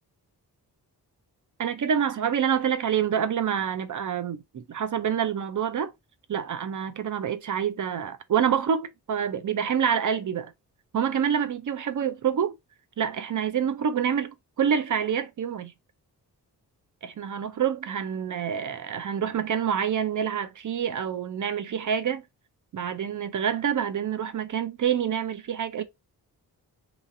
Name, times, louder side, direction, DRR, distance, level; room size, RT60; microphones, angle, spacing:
voice 1, 1.6-5.9 6.3-10.5 10.9-12.5 13.0-15.7 17.0-22.2 22.7-25.8, right 8 dB, 50° right, 0.5 m, -27 dB
3.0 x 2.6 x 2.5 m
cardioid pair, 45°, 41 cm